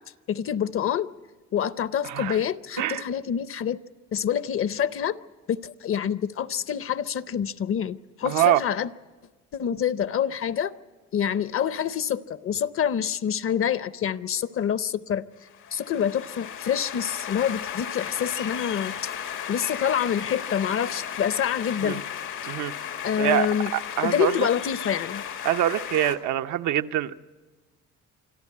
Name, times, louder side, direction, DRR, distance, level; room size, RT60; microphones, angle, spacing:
voice 1, 0.3-1.1 1.5-3.8 4.1-5.2 5.5-8.9 9.5-10.7 11.1-15.3 15.7-19.1 19.5-22.0 23.0-23.7 24.0-25.2, left 9 dB, 45° left, 0.6 m, -26 dB
voice 2, 2.0-2.4 2.8-3.0 8.2-8.6 21.8-22.0 22.5-22.7 23.2-23.5 23.7-24.4 25.4-27.2, right 12 dB, 85° right, 0.7 m, -24 dB
sound 1, 15.4-26.2, left 9 dB, 85° left, 1.8 m, -35 dB
25.5 x 13.5 x 8.5 m
cardioid pair, 115°, 30 cm